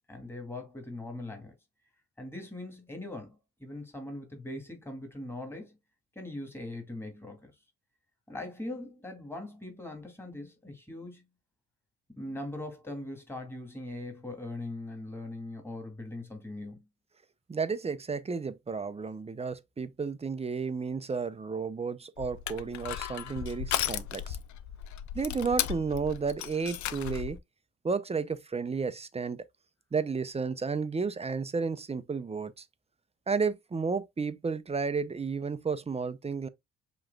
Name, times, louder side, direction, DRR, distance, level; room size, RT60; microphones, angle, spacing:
voice 1, 0.1-1.6 2.2-5.8 6.2-7.5 8.3-11.3 12.1-16.9, left 2 dB, 10° left, 2.2 m, -41 dB
voice 2, 17.5-24.4 25.1-27.4 27.8-29.4 29.9-32.6 33.3-36.5, right 5 dB, 20° right, 0.6 m, -32 dB
Crushing, 22.2-27.4, left 11 dB, 70° left, 0.6 m, -35 dB
7.3 x 3.1 x 2.2 m
cardioid pair, 90°, 30 cm